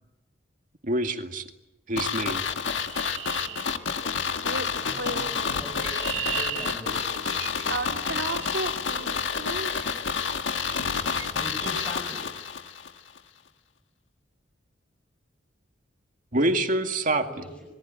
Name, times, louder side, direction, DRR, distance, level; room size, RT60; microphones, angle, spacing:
voice 1, 0.8-1.5 1.9-2.5 16.3-17.4, right 1 dB, 45° right, 5 dB, 2.2 m, -26 dB
sound 1, 2.0-12.9 13.2-13.3, left 6 dB, 75° left, 1.6 m, -29 dB
Chirp tweet, 2.8-4.4 5.4-8.6 9.7-9.9 10.5-10.8 11.1-11.3 11.6-11.9, right 11 dB, 90° right, 2.2 m, -38 dB
voice 2, 3.4-3.7 4.8-5.9 6.1-7.0 11.3-12.3 17.1-17.7, equal, 5° left, 1 dB, 5.8 m, -41 dB
voice 3, 4.4-5.3 7.7-9.9, right 2 dB, 65° right, 4 dB, 2.9 m, -34 dB
26.0 x 22.0 x 9.0 m, 1.0 s
head